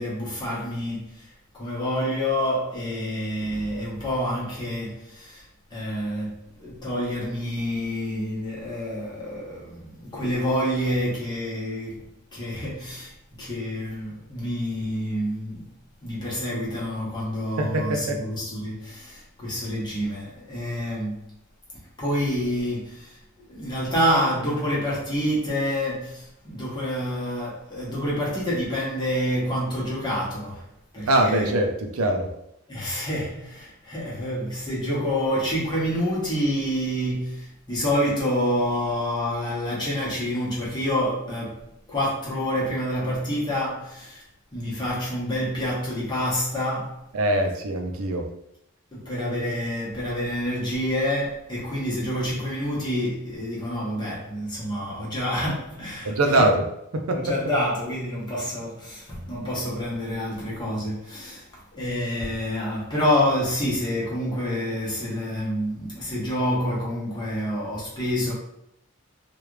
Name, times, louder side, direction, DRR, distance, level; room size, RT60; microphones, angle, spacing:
voice 1, 0.0-15.7 16.0-21.3 21.7-30.7 30.9-31.5 32.7-44.2 44.5-47.1 48.9-56.5 57.1-68.3, equal, 20° left, 1.1 m, -28 dB
voice 2, 17.6-18.2 31.1-32.4 47.1-48.3 56.0-56.6 56.9-57.4, right 1 dB, 75° right, 0.5 m, -23 dB
3.2 x 2.4 x 3.1 m
head